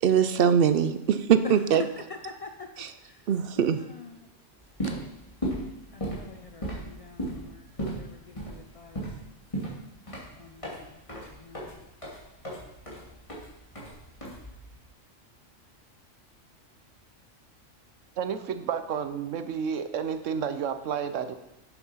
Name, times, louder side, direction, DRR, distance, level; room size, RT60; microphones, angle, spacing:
voice 1, 0.0-1.8 2.8-2.9 3.3-3.8, right 8 dB, 60° right, 12 dB, 0.7 m, -22 dB
voice 2, 1.4-3.3 3.6-4.3 5.9-9.1 10.4-11.9, left 4 dB, 70° left, 6 dB, 0.3 m, -45 dB
sound 1, 4.6-14.8, right 1 dB, 25° left, 2.5 m, -36 dB
voice 3, 18.2-21.4, right 7 dB, 75° right, 10 dB, 1.1 m, -31 dB
8.3 x 7.0 x 5.7 m, 0.88 s
omnidirectional pair, 1.3 m